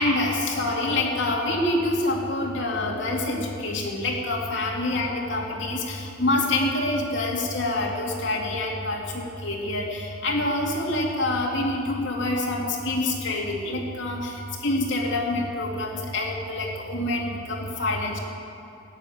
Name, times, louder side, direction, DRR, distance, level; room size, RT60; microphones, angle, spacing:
voice 1, 0.0-14.3 14.6-18.2, left 2 dB, 75° left, -2 dB, 2.7 m, -26 dB
14.0 x 9.9 x 8.5 m, 2.6 s
head